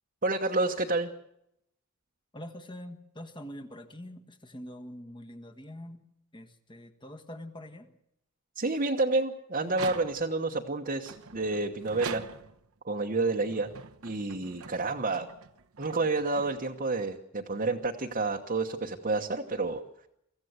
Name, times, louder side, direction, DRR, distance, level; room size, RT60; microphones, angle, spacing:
voice 1, 0.2-1.1 8.6-12.2 12.8-13.7 14.0-15.3 15.8-19.8, right 3 dB, 40° right, 0 dB, 1.1 m, -29 dB
voice 2, 2.3-6.0 6.3-7.9, left 1 dB, 20° left, 5 dB, 1.5 m, -44 dB
sound 1, 9.6-10.5 11.0-12.7 13.4-17.0, right 5 dB, 70° right, 1.0 m, -44 dB
24.5 x 15.0 x 8.0 m, 0.80 s
head